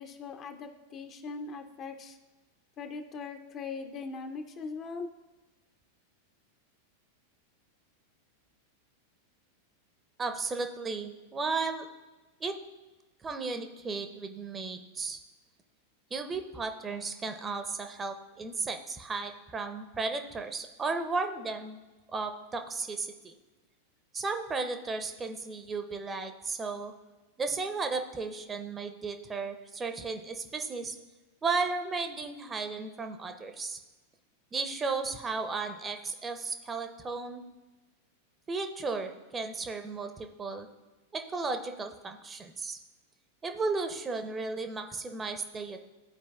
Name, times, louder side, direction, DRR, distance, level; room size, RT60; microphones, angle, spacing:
voice 1, 0.0-2.2 2.8-5.1, left 4 dB, 30° left, 7 dB, 0.6 m, -40 dB
voice 2, 10.2-11.9 12.4-12.5 13.2-15.2 16.1-21.8 22.1-23.3 24.1-26.9 27.4-31.0 31.4-33.8 34.5-37.4 38.5-40.7 41.1-42.8 43.4-45.8, right 4 dB, 15° right, 6 dB, 0.6 m, -34 dB
13.5 x 4.5 x 2.3 m, 1.2 s
figure-of-eight pair, 90°, 0 cm